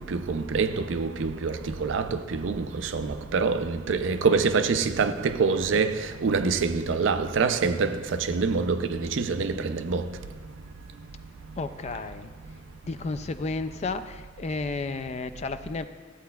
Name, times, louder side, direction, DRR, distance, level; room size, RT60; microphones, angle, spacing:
voice 1, 0.1-1.5 1.8-2.0 2.4-2.5 2.9-3.1 3.3-5.9 6.2-7.9 8.3-9.5 9.9-10.0, right 4 dB, 75° right, 0.4 m, -25 dB
voice 2, 11.6-12.3 12.8-15.9, left 3 dB, 35° left, 0.3 m, -32 dB
14.0 x 8.4 x 2.3 m
head